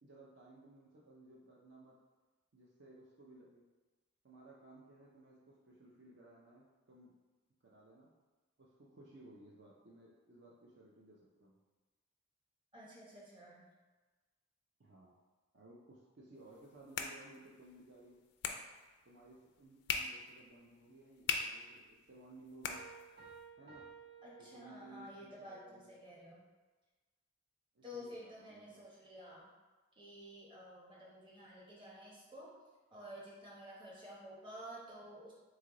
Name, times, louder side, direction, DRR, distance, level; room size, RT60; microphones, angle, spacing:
voice 1, 0.0-2.0 2.5-3.6 4.2-7.1 7.6-8.1 8.6-11.6 14.8-15.1 15.5-18.2 19.0-22.8 23.6-23.9 24.4-25.9 27.7-28.8, right 2 dB, 55° right, -4 dB, 0.6 m, -58 dB
voice 2, 12.7-13.7 24.2-26.4 27.8-29.5 30.0-32.5 32.9-35.3, equal, 25° right, -5 dB, 1.0 m, -51 dB
sound 1, 16.4-23.5, left 6 dB, 55° left, 0.3 m, -43 dB
Piano, 22.7-25.2, right 5 dB, 80° right, 1.2 m, -55 dB
3.7 x 3.3 x 3.8 m, 1.3 s
head